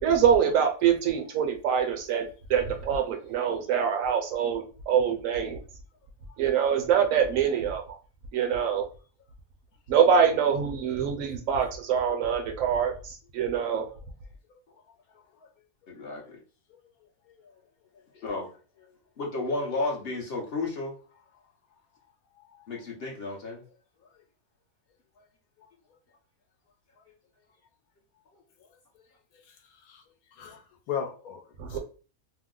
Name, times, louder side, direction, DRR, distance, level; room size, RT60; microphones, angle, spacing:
voice 1, 0.0-2.2 2.5-5.6 6.4-8.0 8.3-8.8 9.9-13.9 31.6-31.8, right 7 dB, 70° right, 5 dB, 0.9 m, -24 dB
voice 2, 15.9-16.4 18.2-18.5 19.2-20.9 22.7-23.6, left 3 dB, 55° left, -1 dB, 0.8 m, -32 dB
voice 3, 30.3-31.8, left 8 dB, 80° left, 3 dB, 1.2 m, -37 dB
2.8 x 2.0 x 3.6 m, 0.38 s
omnidirectional pair, 1.5 m